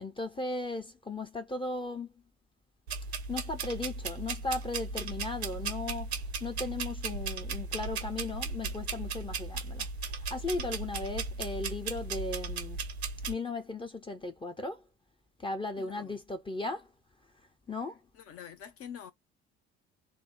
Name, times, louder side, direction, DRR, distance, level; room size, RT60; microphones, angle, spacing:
voice 1, 0.0-2.1 3.3-6.1 6.4-9.9 10.3-12.8 13.3-14.8 15.4-16.9 17.7-18.0, left 2 dB, 15° left, 0.8 m, -36 dB
sound 1, 2.9-13.3, right 4 dB, 75° right, 0.8 m, -36 dB
voice 2, 15.8-16.2 18.1-19.1, left 8 dB, 45° left, 1.0 m, -46 dB
3.4 x 2.2 x 3.4 m
figure-of-eight pair, 55°, 33 cm